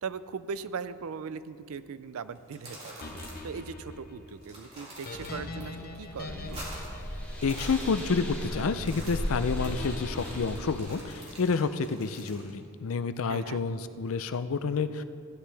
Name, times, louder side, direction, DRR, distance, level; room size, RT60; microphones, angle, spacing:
voice 1, 0.0-3.0 3.4-6.6 13.3-13.6, right 5 dB, 65° right, 14 dB, 0.4 m, -39 dB
sound 1, 2.4-3.6 3.9-4.0 4.3-5.6 6.0-7.0 7.3-8.4 8.7-12.5, right 1 dB, 30° right, 2.6 m, -46 dB
sound 2, 3.0-8.3 9.6-11.5, left 2 dB, 40° left, 0.9 m, -42 dB
sound 3, 5.9-11.1, equal, 10° left, 2.4 m, -37 dB
voice 2, 7.4-15.0, left 5 dB, 65° left, 12 dB, 0.5 m, -29 dB
15.5 x 9.7 x 3.4 m, 2.3 s
head